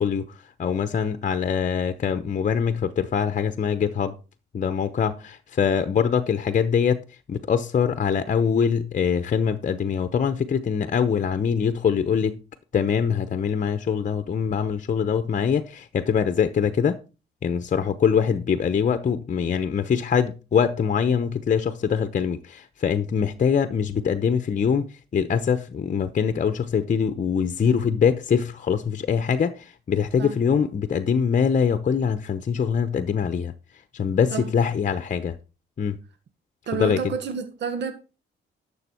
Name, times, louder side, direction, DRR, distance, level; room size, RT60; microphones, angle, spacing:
voice 1, 0.0-4.2 4.5-7.0 7.3-12.4 12.7-17.0 17.4-33.5 33.9-35.4 35.8-36.0 36.7-37.1, left 7 dB, 40° left, 0.9 m, -23 dB
voice 2, 36.7-37.9, right 6 dB, 60° right, 1.5 m, -29 dB
11.5 x 7.2 x 4.4 m
cardioid pair, 90°, 20 cm